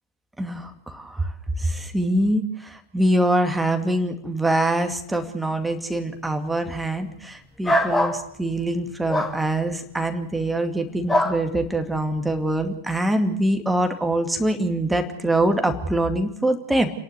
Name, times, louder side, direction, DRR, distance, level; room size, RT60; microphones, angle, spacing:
voice 1, 0.4-1.3 1.6-16.9, right 1 dB, 5° right, 5 dB, 2.4 m, -24 dB
sound 1, 7.6-8.2 9.1-9.3 11.1-11.4, equal, 10° left, 2.6 m, -21 dB
30.0 x 11.5 x 8.2 m, 0.75 s
figure-of-eight pair, 90°, 0 cm